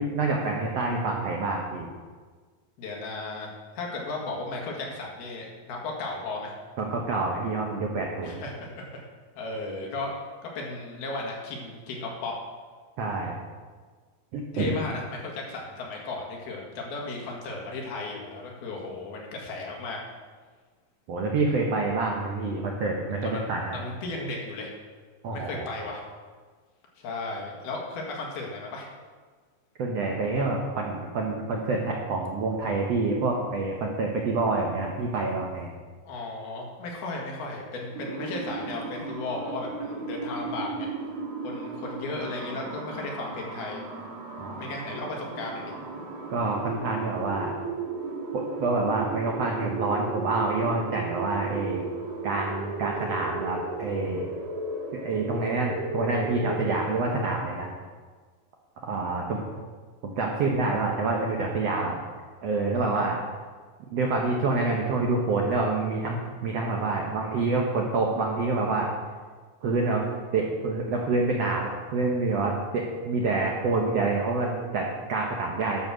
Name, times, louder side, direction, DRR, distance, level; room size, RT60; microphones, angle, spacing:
voice 1, 0.0-1.9 6.8-8.4 13.0-13.4 14.3-14.7 21.1-23.8 25.2-25.7 29.8-35.7 44.4-44.6 46.3-47.5 48.3-51.9 52.2-54.2 55.0-57.7 58.8-59.4 60.0-62.0 62.4-63.2 63.9-68.9 69.6-70.0 70.3-75.8, right 3 dB, 90° right, 0 dB, 1.4 m, -27 dB
voice 2, 2.8-3.5 3.8-6.5 8.2-9.0 9.4-10.1 10.4-12.4 14.5-20.0 23.2-24.7 25.3-26.0 27.0-28.9 36.1-40.9 41.4-43.8 44.6-45.7 62.8-62.9, left 3 dB, 75° left, -1 dB, 3.7 m, -35 dB
sound 1, 37.9-56.8, right 3 dB, 55° right, 1.9 m, -35 dB
11.0 x 7.0 x 6.3 m, 1.5 s
omnidirectional pair, 4.5 m